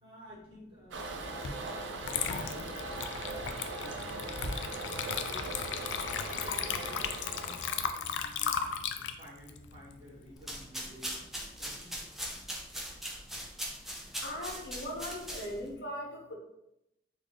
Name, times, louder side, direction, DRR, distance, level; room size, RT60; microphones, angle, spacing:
voice 1, 0.0-2.9 3.3-5.6 6.3-8.7 9.0-11.2 11.5-12.1, equal, 30° right, -6 dB, 1.4 m, -53 dB
Toilet flush, 0.9-8.0, right 2 dB, 85° right, 0.6 m, -40 dB
Water / Liquid, 1.4-1.6 2.0-10.6, left 7 dB, 85° left, 0.3 m, -36 dB
sound 1, 10.4-15.7, equal, ahead, 0.5 m, -40 dB
voice 2, 14.2-16.3, left 1 dB, 65° left, -1 dB, 0.9 m, -39 dB
3.2 x 2.6 x 3.8 m, 0.85 s
head